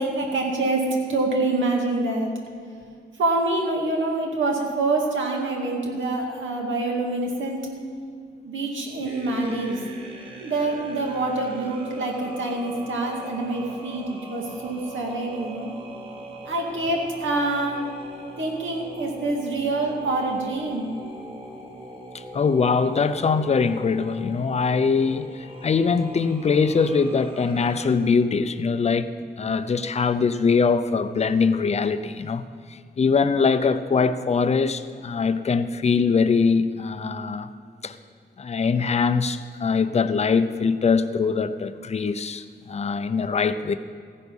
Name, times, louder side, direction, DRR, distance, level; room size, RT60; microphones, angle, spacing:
voice 1, 0.0-2.3 3.2-7.7 8.4-9.8 10.4-15.7 16.4-17.8 18.4-20.9, right 2 dB, 85° right, 0 dB, 2.1 m, -26 dB
sound 1, 9.0-27.9, right 1 dB, 25° right, 1.8 m, -41 dB
voice 2, 22.3-29.1 29.4-32.4 32.7-37.5 37.8-37.9 38.4-43.7, left 5 dB, 35° left, 11 dB, 0.5 m, -22 dB
15.0 x 10.5 x 5.4 m, 2.2 s
wide cardioid pair, 165°, 19 cm